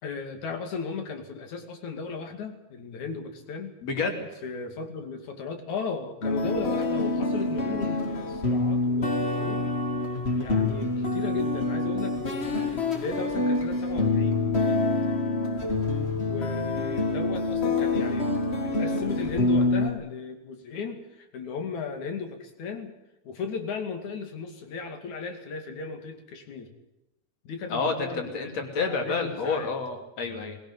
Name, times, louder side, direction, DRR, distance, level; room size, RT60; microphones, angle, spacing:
voice 1, 0.0-3.8 4.4-9.8 10.4-14.5 16.2-18.3 18.6-23.0 23.3-26.7 27.4-28.6 28.9-29.7, left 5 dB, 80° left, 6 dB, 4.0 m, -36 dB
voice 2, 3.8-4.3 14.7-14.8 27.7-30.6, left 4 dB, 60° left, 4 dB, 4.1 m, -29 dB
sound 1, 6.2-19.9, left 3 dB, 25° left, 1.8 m, -26 dB
21.0 x 17.5 x 9.8 m, 0.93 s
omnidirectional pair, 3.3 m